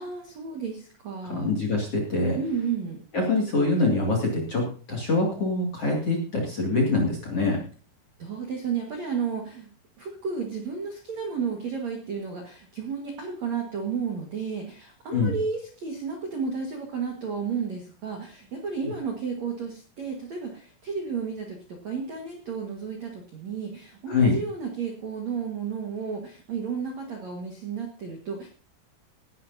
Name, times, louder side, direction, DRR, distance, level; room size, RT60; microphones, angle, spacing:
voice 1, 0.0-1.5 2.4-3.0 8.2-9.7 10.0-28.5, right 6 dB, 75° right, 2 dB, 1.6 m, -32 dB
voice 2, 1.3-2.4 3.1-7.6 15.1-15.3 24.1-24.4, left 3 dB, 45° left, 0 dB, 2.2 m, -24 dB
18.0 x 11.5 x 2.7 m, 0.39 s
omnidirectional pair, 6.0 m